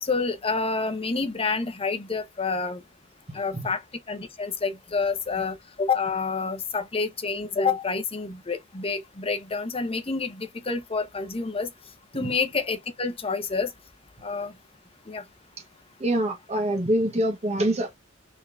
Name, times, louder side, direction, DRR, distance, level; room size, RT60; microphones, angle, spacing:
voice 1, 0.0-2.8 3.3-3.8 4.1-11.7 12.1-13.7 14.2-14.5 15.1-15.2, left 4 dB, 30° left, 0.9 m, -28 dB
voice 2, 3.3-3.7 12.2-12.3 16.0-17.9, right 1 dB, 30° right, 1.0 m, -25 dB
4.5 x 3.8 x 2.4 m
head